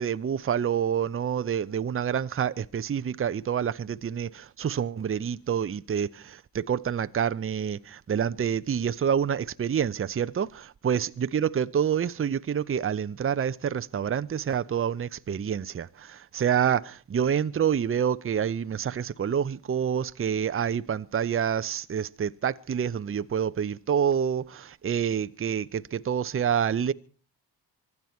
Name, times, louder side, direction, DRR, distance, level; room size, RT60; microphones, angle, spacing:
voice 1, 0.0-26.9, right 8 dB, 25° right, 0.8 m, -27 dB
25.0 x 12.0 x 4.5 m
hypercardioid pair, 40°, 49 cm